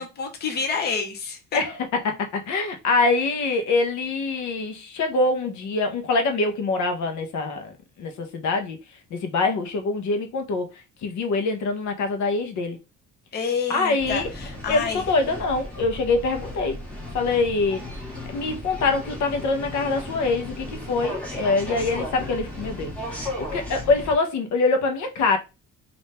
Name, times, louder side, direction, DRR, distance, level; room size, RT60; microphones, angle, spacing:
voice 1, 0.0-1.4 13.3-15.1, left 5 dB, 30° left, 0.8 m, -28 dB
voice 2, 2.0-7.7 8.0-8.8 9.1-10.7 11.0-12.8 13.7-14.3 14.7-16.8 17.1-17.8 18.3-22.9 23.4-25.4, left 3 dB, 65° left, 0.8 m, -24 dB
sound 1, 14.0-24.1, left 1 dB, 5° left, 1.4 m, -35 dB
3.5 x 2.6 x 4.2 m
cardioid pair, 175°, 32 cm